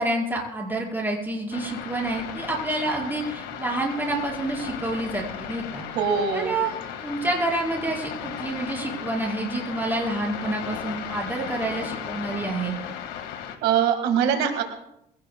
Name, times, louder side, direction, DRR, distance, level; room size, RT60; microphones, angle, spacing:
voice 1, 0.0-5.9 6.3-6.7 7.0-12.8, right 2 dB, 10° right, -3 dB, 5.3 m, -28 dB
sound 1, 1.5-13.6, left 8 dB, 90° left, 1.7 m, -36 dB
voice 2, 6.0-6.5 13.6-14.6, right 7 dB, 85° right, 5 dB, 1.8 m, -22 dB
22.0 x 17.5 x 2.3 m, 0.81 s
cardioid pair, 110°, 17 cm